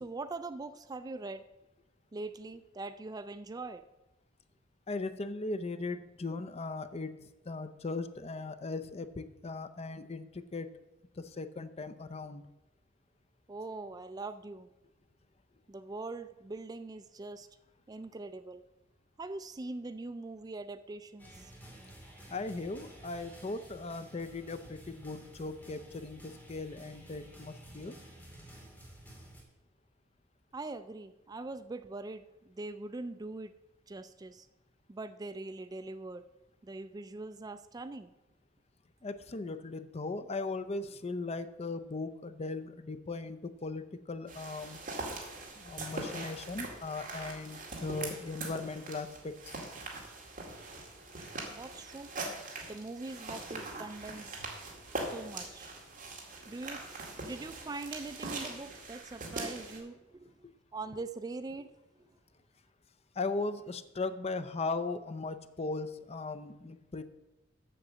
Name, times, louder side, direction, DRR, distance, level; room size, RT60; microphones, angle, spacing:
voice 1, 0.0-1.4 2.1-3.8 13.5-14.7 15.7-17.5 17.9-18.6 19.2-21.3 30.5-32.2 32.6-33.5 33.9-34.5 34.9-36.3 36.6-38.1 51.5-52.1 52.7-54.2 55.1-55.7 56.5-56.9 57.1-60.3 60.7-61.7, right 3 dB, 20° right, 11 dB, 0.3 m, -42 dB
voice 2, 4.9-10.7 11.2-12.4 22.3-28.0 39.0-44.8 45.6-49.5 60.4-60.5 63.2-67.0, left 3 dB, 30° left, 12 dB, 0.5 m, -38 dB
sound 1, 21.2-29.4, right 1 dB, 10° left, 2.4 m, -52 dB
sound 2, 44.3-59.8, right 2 dB, 45° right, 2.1 m, -42 dB
7.7 x 6.7 x 7.4 m, 0.98 s
head